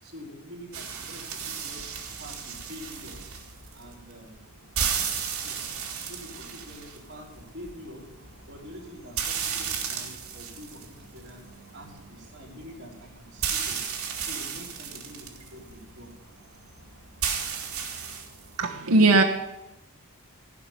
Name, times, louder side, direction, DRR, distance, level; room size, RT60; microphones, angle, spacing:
voice 1, 0.0-3.3 3.7-4.4 5.4-8.1 8.5-11.4 11.7-13.9 14.2-16.2, equal, 50° right, -2 dB, 4.1 m, -46 dB
sound 1, 0.7-18.6, right 7 dB, 70° right, 2.3 m, -35 dB
voice 2, 18.6-19.2, right 2 dB, 85° right, 1 dB, 1.1 m, -18 dB
16.0 x 5.9 x 9.6 m, 0.92 s
head